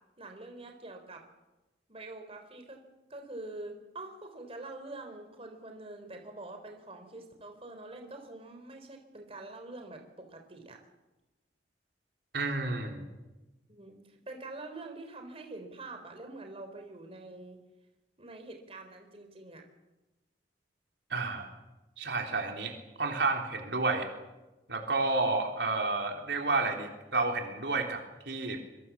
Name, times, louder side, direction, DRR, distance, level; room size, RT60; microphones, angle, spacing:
voice 1, 0.2-1.2 1.9-2.8 3.1-10.8 13.7-17.6 18.2-19.6, right 2 dB, 35° right, 4 dB, 3.6 m, -45 dB
voice 2, 12.3-13.1 21.1-21.5 22.0-22.7 23.0-24.1 24.7-28.6, right 3 dB, 70° right, 3 dB, 3.5 m, -30 dB
25.5 x 23.0 x 7.2 m, 1.1 s
head